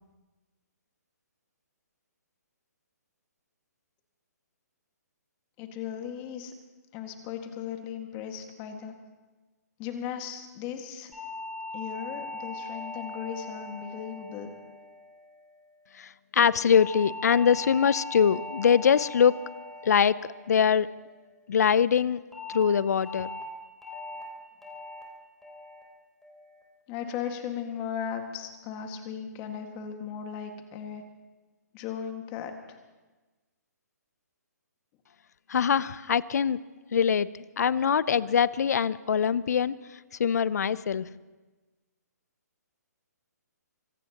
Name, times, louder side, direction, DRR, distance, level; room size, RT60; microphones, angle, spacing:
voice 1, 5.6-6.5 6.9-9.0 9.8-11.1 11.7-14.5 26.9-31.0 31.7-32.8, left 8 dB, 25° left, 5 dB, 1.8 m, -37 dB
sound 1, 11.1-15.6 16.7-21.2 22.3-22.6 23.0-23.4 23.8-24.2 24.6-25.0 25.4-25.8 26.2-26.6, left 2 dB, 5° left, 3.5 m, -41 dB
voice 2, 16.0-19.4 19.8-20.2 20.5-20.9 21.5-22.2 22.5-23.3 35.5-36.6 36.9-37.3 37.6-39.8 40.2-41.1, left 7 dB, 65° left, 19 dB, 0.6 m, -23 dB
25.0 x 18.0 x 3.0 m, 1.2 s
hypercardioid pair, 145°, 9 cm